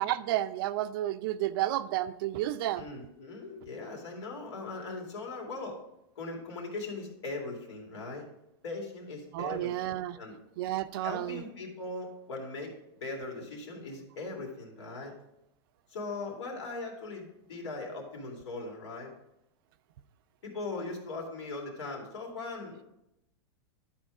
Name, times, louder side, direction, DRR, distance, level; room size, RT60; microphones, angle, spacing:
voice 1, 0.0-2.8 9.3-10.2 10.6-11.4, right 14 dB, 55° right, 13 dB, 0.5 m, -31 dB
voice 2, 2.8-5.8 6.2-8.3 8.6-10.3 10.9-12.7 13.0-15.1 15.9-19.1 20.4-22.8, left 3 dB, 85° left, 0 dB, 2.5 m, -39 dB
11.5 x 4.4 x 4.9 m, 0.87 s
supercardioid pair, 150°, 14 cm